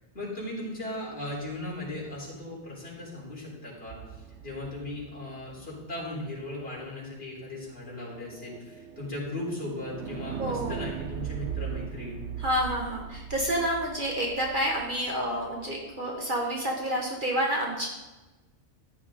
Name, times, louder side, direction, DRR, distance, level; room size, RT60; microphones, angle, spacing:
voice 1, 0.1-12.2, left 1 dB, 55° left, -5 dB, 4.0 m, -37 dB
sound 1, 3.9-6.0 7.9-15.9, right 7 dB, 75° right, 1.1 m, -40 dB
voice 2, 10.4-10.8 12.4-17.9, equal, 45° right, -1 dB, 1.7 m, -29 dB
14.0 x 9.6 x 3.8 m, 1.1 s
omnidirectional pair, 1.2 m